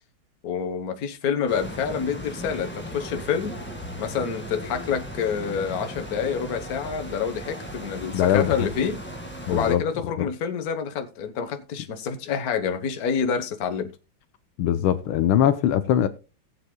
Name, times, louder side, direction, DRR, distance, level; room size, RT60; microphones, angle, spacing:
voice 1, 0.4-3.6 4.0-9.0 9.5-13.9, left 7 dB, 50° left, 1.5 m, -27 dB
sound 1, 1.5-9.8, equal, 5° left, 1.7 m, -37 dB
voice 2, 8.1-8.5 9.5-9.8 10.2-10.3 14.6-16.1, left 10 dB, 80° left, 1.6 m, -21 dB
18.5 x 8.1 x 2.2 m
omnidirectional pair, 2.3 m